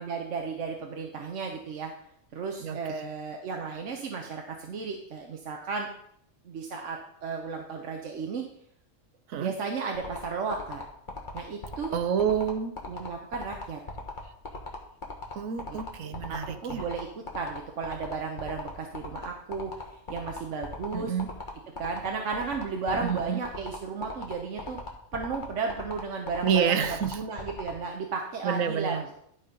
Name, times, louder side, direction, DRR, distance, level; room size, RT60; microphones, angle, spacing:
voice 1, 0.0-1.9 2.3-5.9 6.4-8.4 9.4-10.8 11.3-11.9 12.9-13.8 15.7-15.8 16.0-21.1 21.8-24.8 25.1-29.2, right 4 dB, 70° right, 2 dB, 1.2 m, -34 dB
voice 2, 2.6-3.0 9.3-9.5 11.9-12.7 15.3-16.8 20.9-21.3 23.0-23.4 26.4-27.2 28.4-29.0, right 7 dB, 90° right, 10 dB, 1.2 m, -28 dB
sound 1, 9.9-27.7, left 3 dB, 40° left, 1.6 m, -37 dB
11.5 x 4.4 x 5.2 m, 0.69 s
omnidirectional pair, 1.3 m